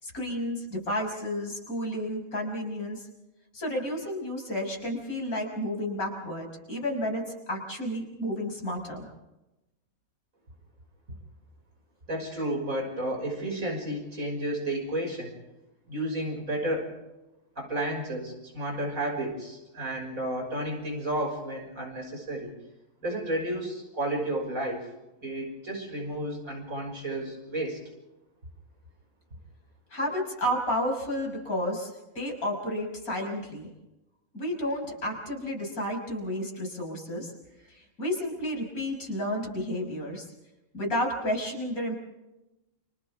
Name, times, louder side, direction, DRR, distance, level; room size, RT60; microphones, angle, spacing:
voice 1, 0.0-3.1 3.5-9.1 29.9-33.7 34.3-37.3 37.7-40.2 40.7-42.0, equal, 80° left, 1 dB, 6.4 m, -31 dB
voice 2, 12.1-15.3 15.9-16.9 17.6-22.5 23.0-24.9 25.2-27.8, right 1 dB, 70° right, 1 dB, 6.6 m, -32 dB
30.0 x 27.5 x 3.7 m, 0.97 s
omnidirectional pair, 1.5 m